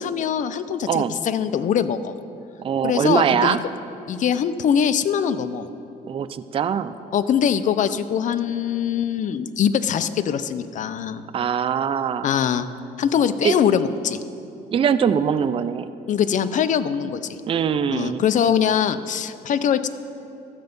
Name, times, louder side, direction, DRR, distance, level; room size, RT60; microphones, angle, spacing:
voice 1, 0.0-2.1 2.8-3.6 4.1-5.6 7.1-11.2 12.2-12.7 13.0-14.2 16.1-17.2 17.9-19.9, left 8 dB, 50° left, 12 dB, 0.5 m, -22 dB
voice 2, 2.6-3.6 6.1-6.9 11.3-12.3 13.4-13.5 14.7-15.9 17.5-18.2, right 7 dB, 30° right, 12 dB, 0.4 m, -22 dB
13.0 x 7.8 x 5.3 m, 2.6 s
cardioid pair, 110°, 17 cm